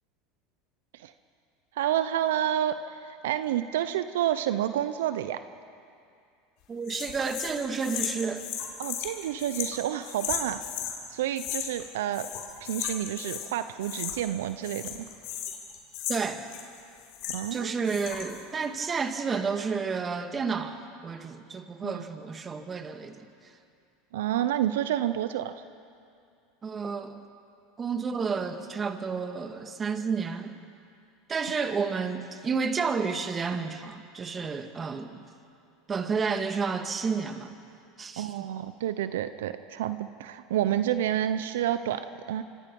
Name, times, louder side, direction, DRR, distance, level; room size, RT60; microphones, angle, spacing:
voice 1, 1.7-5.4 8.8-10.7 11.1-12.3 12.6-15.0 17.3-17.7 21.8-22.0 24.1-25.5 38.2-42.4, right 11 dB, 80° right, 11 dB, 0.8 m, -29 dB
voice 2, 6.7-8.4 16.1-16.4 17.5-23.3 26.6-27.2 27.8-30.6 31.3-35.2 35.9-37.5 38.0-38.5, right 5 dB, 25° right, 7 dB, 2.0 m, -31 dB
sound 1, 6.9-11.0 11.4-11.9 12.1-13.5 13.8-14.4 14.6-17.6 17.8-18.4, left 10 dB, 60° left, 3.8 m, -35 dB
25.5 x 25.5 x 5.5 m, 2.4 s
hypercardioid pair, 100°, 0 cm